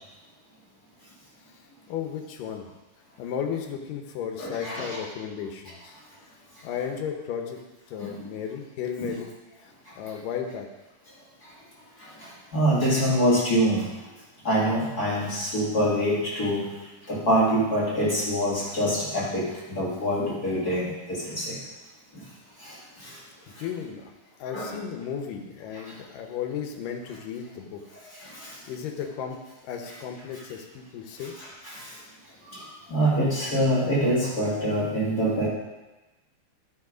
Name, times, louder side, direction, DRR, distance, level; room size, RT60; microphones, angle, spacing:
voice 1, 1.9-2.7 3.2-5.9 6.6-7.6 7.9-9.3 9.6-10.7 23.6-24.1 24.4-27.8 28.7-29.4 29.6-31.3, left 8 dB, 80° left, 3 dB, 2.6 m, -34 dB
voice 2, 4.4-5.0 8.0-8.2 9.0-9.1 12.2-13.8 14.4-16.7 17.1-19.4 19.7-21.6 22.6-22.8 23.0-23.1 24.5-24.8 28.2-28.5 31.4-31.8 32.5-32.6 32.9-35.5, equal, 30° left, -7 dB, 2.2 m, -25 dB
12.0 x 5.7 x 5.0 m, 1.1 s
omnidirectional pair, 3.8 m